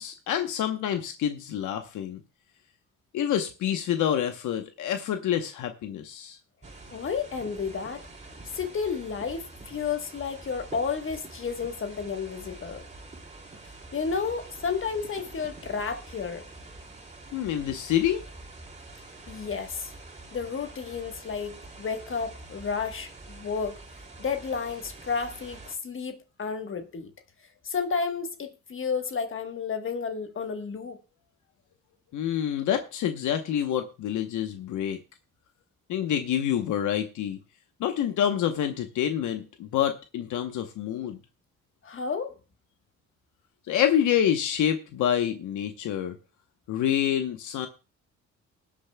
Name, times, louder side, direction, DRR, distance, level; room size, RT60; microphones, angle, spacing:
voice 1, 0.0-2.2 3.1-6.4 17.3-18.2 32.1-35.0 35.9-37.4 37.8-41.2 43.7-46.2 46.7-47.7, left 10 dB, 80° left, 0.9 m, -27 dB
sound 1, 6.6-25.7, right 2 dB, 25° right, 2.4 m, -46 dB
voice 2, 6.9-8.0 8.5-12.8 13.9-16.5 19.3-19.9 20.3-23.8 24.2-27.1 27.6-31.0 41.8-42.4, left 5 dB, 45° left, 1.2 m, -32 dB
20.5 x 8.5 x 2.2 m
cardioid pair, 90°, 30 cm